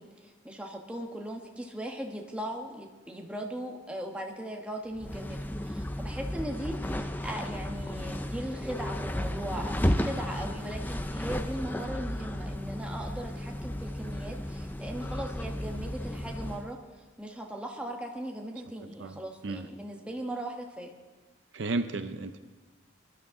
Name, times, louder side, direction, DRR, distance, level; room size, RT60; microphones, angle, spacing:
voice 1, 0.0-20.9, right 1 dB, 5° right, 1 dB, 1.2 m, -38 dB
sound 1, 5.0-16.7, left 1 dB, 10° left, 0.5 m, -34 dB
voice 2, 19.0-19.7 21.5-22.4, right 3 dB, 65° right, 9 dB, 0.6 m, -33 dB
21.5 x 11.5 x 3.7 m, 1.3 s
head